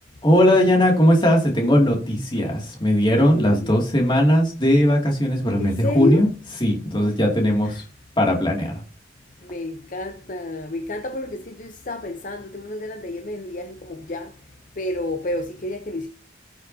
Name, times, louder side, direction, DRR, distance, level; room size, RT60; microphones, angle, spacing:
voice 1, 0.2-6.3 6.6-7.8 8.2-8.7, equal, 25° left, 2.4 m, -18 dB
voice 2, 3.3-3.8 5.6-6.3 7.6-7.8 9.4-14.4 14.8-16.1, left 2 dB, 40° left, 0.7 m, -29 dB
19.0 x 6.4 x 2.8 m
head